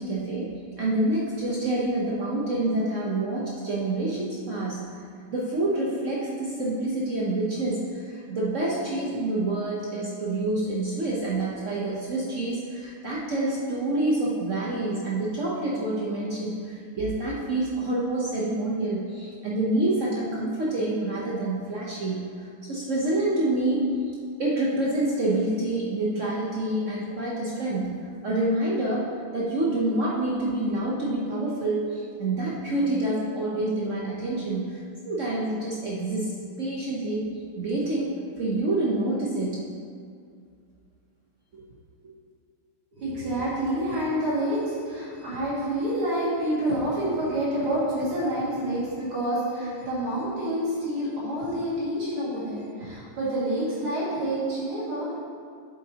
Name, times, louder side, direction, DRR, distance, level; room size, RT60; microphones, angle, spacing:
voice 1, 0.0-5.0 5.3-22.3 22.6-23.9 24.4-39.7 41.5-41.6, right 2 dB, 60° right, -5 dB, 0.8 m, -27 dB
voice 2, 42.9-55.2, right 1 dB, 85° right, -8 dB, 3.1 m, -28 dB
8.1 x 7.7 x 2.8 m, 2.2 s
omnidirectional pair, 2.4 m